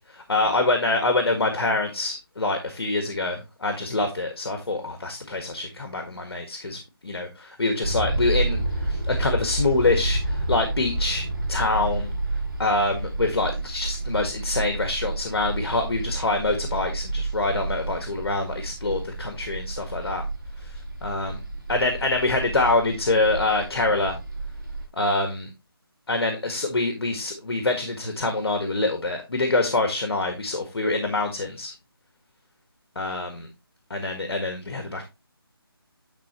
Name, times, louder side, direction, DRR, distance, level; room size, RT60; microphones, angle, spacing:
voice 1, 0.1-12.1 12.6-20.2 20.6-20.7 21.0-21.3 21.7-24.2 24.9-25.5 26.1-31.7 32.9-33.5 33.9-35.0, left 2 dB, 70° left, 5 dB, 1.6 m, -25 dB
sound 1, 7.8-24.9, right 2 dB, 55° right, 2.4 m, -30 dB
10.0 x 4.2 x 3.0 m, 0.26 s
figure-of-eight pair, 175°, 13 cm